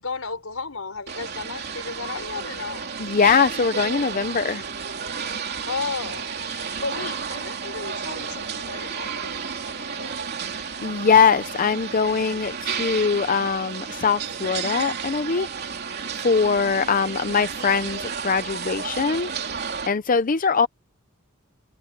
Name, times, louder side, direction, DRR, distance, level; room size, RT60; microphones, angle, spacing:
voice 1, 0.0-2.9 5.7-10.4 16.6-17.6, left 4 dB, 80° left, 4.1 m, -34 dB
sound 1, 1.1-19.9, right 6 dB, 50° right, 3.1 m, -32 dB
voice 2, 3.0-4.6 10.8-15.5 16.2-20.7, left 5 dB, 40° left, 0.6 m, -22 dB
head